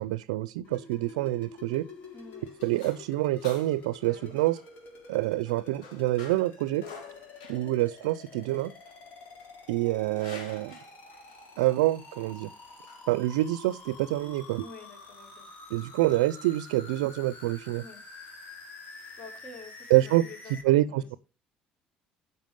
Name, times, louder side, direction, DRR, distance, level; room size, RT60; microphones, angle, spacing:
voice 1, 0.0-1.9 2.6-4.6 5.1-6.8 7.5-8.7 9.7-10.8 11.6-12.5 13.1-14.6 15.7-17.8 19.9-20.2 20.6-21.1, right 16 dB, 85° right, 0.4 m, -26 dB
sound 1, 0.6-20.6, left 3 dB, 60° left, 3.7 m, -48 dB
sound 2, 1.9-14.2, left 4 dB, 85° left, 2.9 m, -51 dB
voice 2, 2.1-2.5 4.0-4.4 14.6-15.5 17.8-18.0 19.2-20.6 20.9-21.2, left 4 dB, 40° left, 4.7 m, -48 dB
9.2 x 5.6 x 5.2 m
hypercardioid pair, 65°, 3 cm